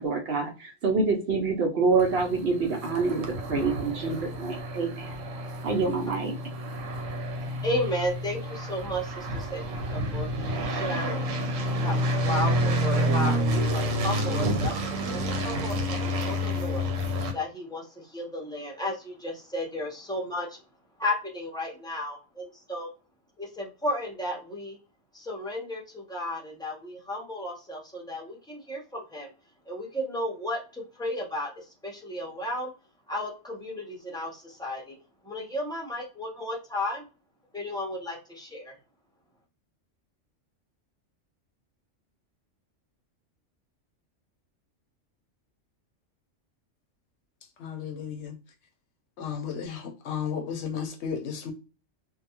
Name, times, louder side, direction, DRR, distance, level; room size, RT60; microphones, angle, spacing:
voice 1, 0.0-5.1 5.6-6.3, right 4 dB, 60° right, 0.7 m, -26 dB
sound 1, 2.0-17.3, equal, 85° right, 1.0 m, -29 dB
voice 2, 7.4-10.3 10.6-11.3 11.8-12.0 12.2-16.0 16.2-16.9 17.3-20.6 21.0-22.9 23.4-24.8 25.1-29.3 29.7-32.7 33.1-35.0 35.2-37.1 37.5-38.7, left 1 dB, 5° left, 0.4 m, -34 dB
voice 3, 47.6-48.4 49.2-51.5, left 7 dB, 70° left, 0.8 m, -33 dB
2.3 x 2.2 x 2.8 m
omnidirectional pair, 1.3 m